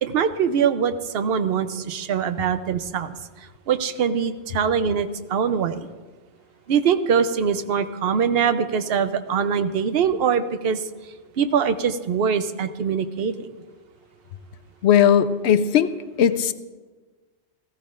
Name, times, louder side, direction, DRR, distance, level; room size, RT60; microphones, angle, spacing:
voice 1, 0.0-3.1 3.7-5.8 6.7-10.8 11.4-13.5, right 7 dB, 65° right, 11 dB, 0.8 m, -23 dB
voice 2, 14.8-15.9 16.2-16.5, left 9 dB, 75° left, 12 dB, 0.9 m, -17 dB
17.5 x 15.5 x 2.5 m, 1.3 s
omnidirectional pair, 1.2 m